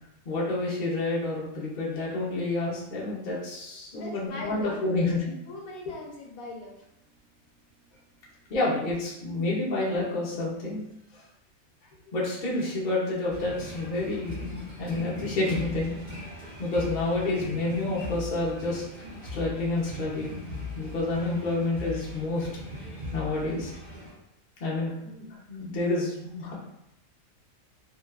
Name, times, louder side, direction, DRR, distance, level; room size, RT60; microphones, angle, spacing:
voice 1, 0.2-5.2 8.5-10.8 11.1-11.2 12.1-15.9 16.6-18.8 19.3-20.4 20.8-22.5 23.1-23.7 24.6-26.5, left 2 dB, 45° left, -6 dB, 0.7 m, -29 dB
voice 2, 4.0-4.8 5.5-7.2 7.7-8.5 24.9-25.0, left 2 dB, 75° left, -1 dB, 1.0 m, -42 dB
sound 1, 13.3-24.1, left 2 dB, 45° right, 1.0 m, -39 dB
2.8 x 2.2 x 2.2 m, 0.85 s
omnidirectional pair, 1.5 m